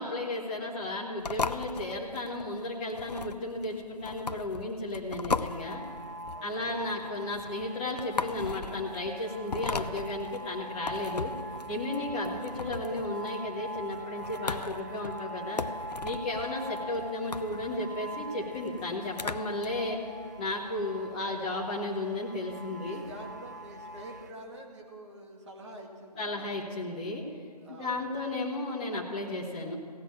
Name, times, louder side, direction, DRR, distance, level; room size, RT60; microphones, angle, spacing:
voice 1, 0.0-5.8 6.4-11.3 11.7-15.6 16.0-20.0 20.4-23.0 26.2-27.2 27.7-29.7, left 2 dB, 10° left, -3 dB, 0.9 m, -34 dB
sound 1, 1.2-19.7, left 4 dB, 75° left, 0.6 m, -38 dB
sound 2, 5.5-24.3, right 1 dB, 25° right, 0.5 m, -43 dB
voice 2, 6.3-6.9 21.2-21.6 22.8-26.6 27.6-28.0, right 1 dB, 45° right, 0 dB, 2.2 m, -46 dB
16.0 x 5.9 x 9.2 m, 2.1 s
figure-of-eight pair, 155°, 21 cm